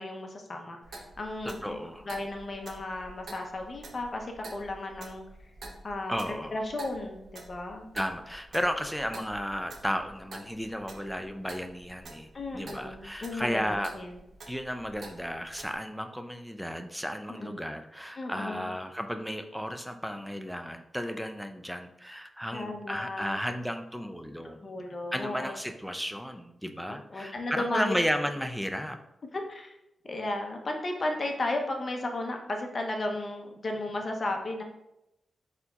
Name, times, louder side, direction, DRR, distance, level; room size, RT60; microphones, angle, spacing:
voice 1, 0.0-1.8 2.0-5.2 5.8-7.9 12.3-14.2 17.3-17.5 18.2-18.7 22.5-23.4 24.6-25.5 26.9-27.9 29.3-29.7 30.1-34.6, left 2 dB, 45° left, 3 dB, 0.7 m, -34 dB
Clock, 0.8-15.7, right 2 dB, 70° right, 0.7 m, -49 dB
voice 2, 1.5-2.1 6.1-6.5 7.9-12.3 12.5-13.9 14.5-24.6 25.1-29.0, equal, ahead, 6 dB, 0.4 m, -33 dB
4.4 x 3.9 x 2.3 m, 0.86 s
cardioid pair, 80°, 0 cm